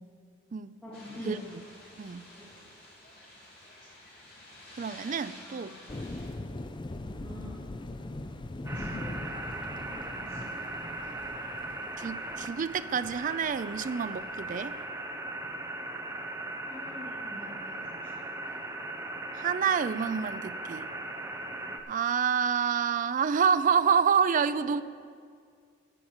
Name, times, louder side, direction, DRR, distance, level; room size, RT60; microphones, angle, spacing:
voice 1, 0.8-1.4 2.3-2.6 5.4-6.2 7.2-7.7 8.7-10.9 11.4-11.5 15.9-16.1 16.7-18.1 24.6-24.8, left 1 dB, 5° left, 2.6 m, -47 dB
sound 1, 0.9-6.3, left 1 dB, 55° left, 3.1 m, -51 dB
voice 2, 2.0-2.3 4.8-5.7 12.0-14.8 19.3-20.9 21.9-24.8, right 7 dB, 40° right, 0.4 m, -28 dB
sound 2, 5.9-14.8, left 2 dB, 25° left, 0.5 m, -41 dB
sound 3, 8.7-21.8, right 2 dB, 15° right, 0.7 m, -38 dB
14.0 x 5.9 x 7.3 m
head